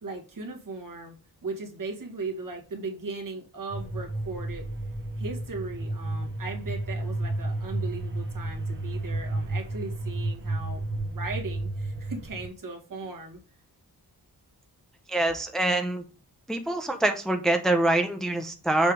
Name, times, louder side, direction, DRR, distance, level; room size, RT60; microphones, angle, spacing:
voice 1, 0.0-1.1 1.4-4.7 5.2-13.4, right 3 dB, 55° right, 2 dB, 1.9 m, -38 dB
sound 1, 3.7-12.5, right 2 dB, 30° right, 1.2 m, -32 dB
voice 2, 15.1-16.0 16.5-18.9, right 2 dB, ahead, 5 dB, 0.7 m, -25 dB
7.0 x 3.3 x 5.0 m, 0.35 s
wide cardioid pair, 100°, 39 cm